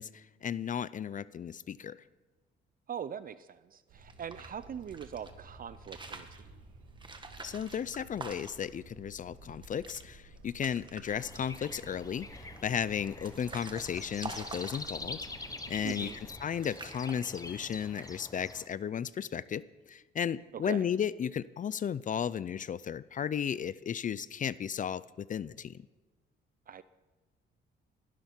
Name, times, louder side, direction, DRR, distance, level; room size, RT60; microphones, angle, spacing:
voice 1, 0.0-2.0 7.4-15.2 15.7-16.1 16.4-25.9, left 8 dB, 40° left, 19 dB, 0.5 m, -34 dB
voice 2, 2.9-6.6 15.8-16.2 20.5-20.9 26.7-26.8, right 8 dB, 45° right, 15 dB, 0.5 m, -42 dB
sound 1, 3.9-16.5, right 2 dB, 90° right, 2.6 m, -54 dB
sound 2, 4.0-5.3 5.7-6.4 7.0-8.8 9.2-9.3 9.5-10.0 10.4-11.0 11.4-11.9 12.6-15.3 15.9-16.4 16.6-17.7 18.0-18.4, right 3 dB, 25° right, 1.7 m, -46 dB
sound 3, 11.1-18.7, left 3 dB, 15° left, 1.0 m, -45 dB
20.5 x 12.5 x 4.5 m, 1.2 s
cardioid pair, 90°, 20 cm